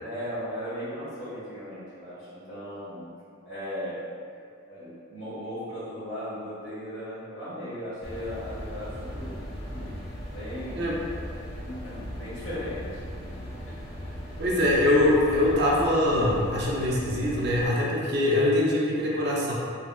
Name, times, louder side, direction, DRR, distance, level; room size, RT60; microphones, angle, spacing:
voice 1, 0.0-3.0 3.4-4.0 4.7-9.9 10.3-10.9 11.4-13.5, equal, 75° left, -16 dB, 1.4 m, -37 dB
sound 1, 8.0-17.7, equal, 50° left, 0.7 m, -38 dB
voice 2, 14.4-19.5, left 1 dB, 50° right, -5 dB, 0.6 m, -23 dB
3.9 x 2.1 x 2.3 m, 2.3 s
head